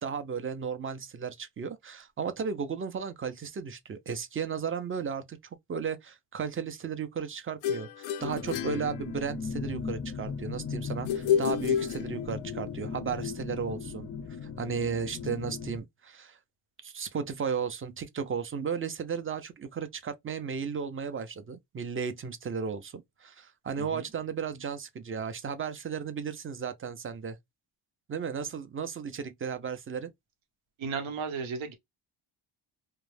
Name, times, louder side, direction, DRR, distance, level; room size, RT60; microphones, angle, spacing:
voice 1, 0.0-5.4 5.7-14.1 14.6-16.4 16.8-27.4 28.1-30.1, right 6 dB, 30° right, 0.5 m, -34 dB
sound 1, 7.6-9.6 11.1-12.6, left 9 dB, 90° left, 0.5 m, -30 dB
sound 2, 8.2-15.8, left 5 dB, 30° left, 0.4 m, -38 dB
voice 2, 23.8-24.1 30.8-31.7, right 5 dB, 85° right, 1.0 m, -35 dB
2.4 x 2.2 x 3.2 m
cardioid pair, 105°, 46 cm